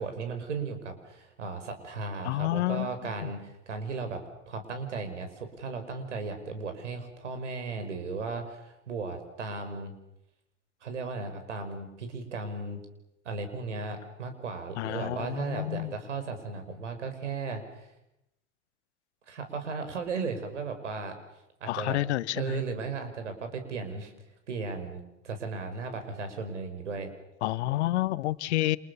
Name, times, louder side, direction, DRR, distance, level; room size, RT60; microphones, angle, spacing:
voice 1, 0.0-10.0 10.8-12.8 13.2-17.9 19.3-21.2 21.6-22.0 22.3-24.1 24.5-27.1, right 4 dB, 85° right, 7 dB, 5.8 m, -36 dB
voice 2, 2.2-2.9 14.8-15.9 21.7-22.6 27.4-28.8, left 16 dB, 70° left, 17 dB, 1.2 m, -29 dB
29.0 x 28.0 x 7.1 m, 0.88 s
hypercardioid pair, 75°, 35 cm